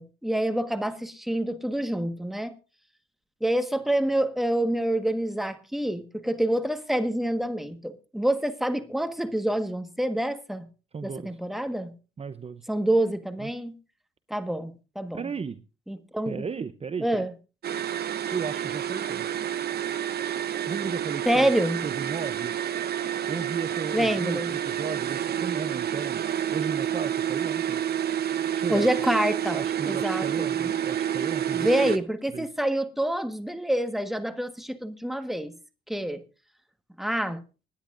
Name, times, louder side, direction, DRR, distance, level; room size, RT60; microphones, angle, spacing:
voice 1, 0.0-2.5 3.4-10.7 11.0-11.9 12.7-13.8 14.3-15.2 15.9-16.4 17.0-17.3 21.2-21.8 23.9-24.5 28.7-30.7 31.5-35.5 35.9-36.2 37.0-37.4, right 1 dB, ahead, 1.5 m, -27 dB
voice 2, 10.9-11.4 12.2-12.7 13.4-13.5 15.1-15.6 16.3-17.3 18.3-19.3 20.7-21.5 21.8-22.5 23.3-26.2 26.5-27.8 28.5-28.9 29.5-31.7 32.3-32.5, right 5 dB, 30° right, 0.7 m, -35 dB
sound 1, 17.6-32.0, right 10 dB, 55° right, 0.9 m, -29 dB
25.5 x 10.0 x 2.5 m
cardioid pair, 90°, 20 cm